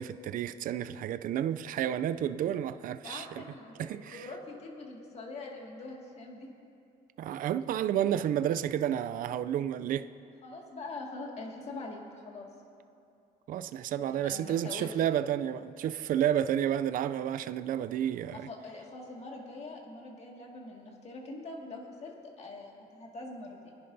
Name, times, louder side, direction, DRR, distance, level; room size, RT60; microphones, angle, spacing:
voice 1, 0.0-3.3 3.8-4.3 7.2-10.1 13.5-18.5, right 10 dB, 55° right, 13 dB, 0.4 m, -31 dB
voice 2, 3.0-6.5 10.4-12.5 14.0-14.9 18.3-23.7, left 2 dB, 40° left, -1 dB, 2.0 m, -43 dB
22.5 x 10.5 x 2.7 m, 2.6 s
cardioid pair, 110°, 17 cm